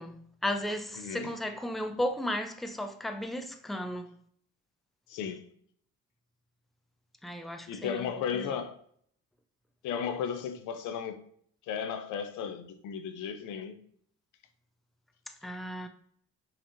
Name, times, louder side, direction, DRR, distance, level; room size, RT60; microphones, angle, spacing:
voice 1, 0.0-4.1 7.2-8.5 15.4-15.9, left 1 dB, ahead, 0.5 m, -35 dB
voice 2, 1.0-1.3 5.1-5.5 7.7-8.8 9.8-11.2 11.7-13.8, left 7 dB, 85° left, 0.6 m, -35 dB
5.7 x 3.5 x 2.6 m
cardioid pair, 90°, 30 cm